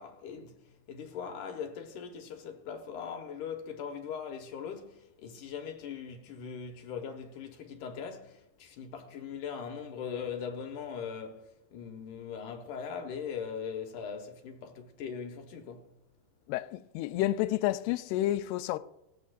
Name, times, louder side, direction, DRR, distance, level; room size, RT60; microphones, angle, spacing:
voice 1, 0.0-15.9, left 6 dB, 65° left, 2.3 m, -40 dB
voice 2, 16.5-18.8, left 14 dB, 85° left, 2.6 m, -30 dB
19.5 x 14.5 x 2.5 m
omnidirectional pair, 4.8 m